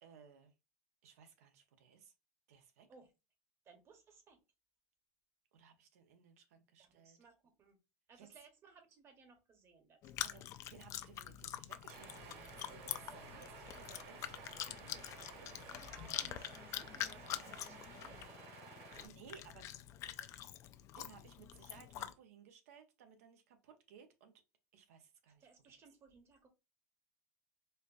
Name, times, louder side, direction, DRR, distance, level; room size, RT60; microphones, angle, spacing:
voice 1, 0.0-0.5 1.0-2.1 2.5-2.9 5.5-7.2 8.2-8.3 10.2-10.4 10.7-15.7 18.8-19.7 20.9-24.3 24.7-25.7, right 7 dB, 80° right, 0.8 m, -60 dB
voice 2, 3.6-4.4 6.8-7.8 8.1-10.1 10.4-10.5 15.7-18.5 20.2-20.5 25.3-26.5, right 5 dB, 35° right, 1.0 m, -63 dB
Chewing mastication, 10.0-22.1, left 12 dB, 40° left, 0.4 m, -45 dB
sound 1, 11.9-19.1, right 4 dB, 60° right, 1.6 m, -54 dB
4.3 x 2.5 x 2.5 m
supercardioid pair, 120°, 8 cm